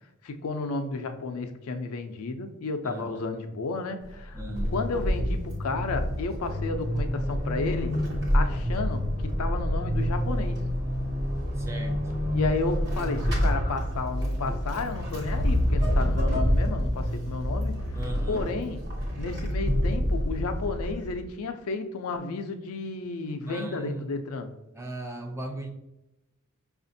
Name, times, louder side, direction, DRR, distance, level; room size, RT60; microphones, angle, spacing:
voice 1, 0.2-4.4 4.7-8.0 8.3-9.1 9.4-10.6 12.3-17.8 18.3-18.8 19.2-24.5, left 3 dB, 85° left, 6 dB, 0.4 m, -32 dB
voice 2, 2.8-3.3 4.3-4.7 11.7-12.0 17.9-18.5 23.5-24.1 24.7-25.7, right 2 dB, 15° right, 3 dB, 0.4 m, -37 dB
Vehicle / Accelerating revving vroom / Squeak, 4.0-21.2, equal, 50° right, 1.1 m, -27 dB
5.0 x 2.4 x 2.6 m, 0.93 s
head